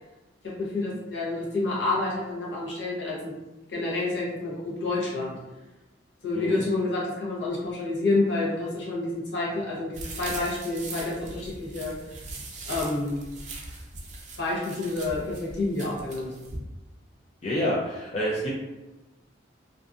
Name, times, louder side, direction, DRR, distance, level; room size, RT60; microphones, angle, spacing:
voice 1, 0.4-3.3 3.7-5.4 6.2-11.9 12.7-13.2 14.4-16.3, left 2 dB, 70° left, -5 dB, 0.8 m, -29 dB
sound 1, 9.9-16.6, right 2 dB, 40° right, 0.4 m, -40 dB
voice 2, 17.4-18.5, equal, 35° left, -6 dB, 0.4 m, -28 dB
2.6 x 2.4 x 2.3 m, 1.1 s
head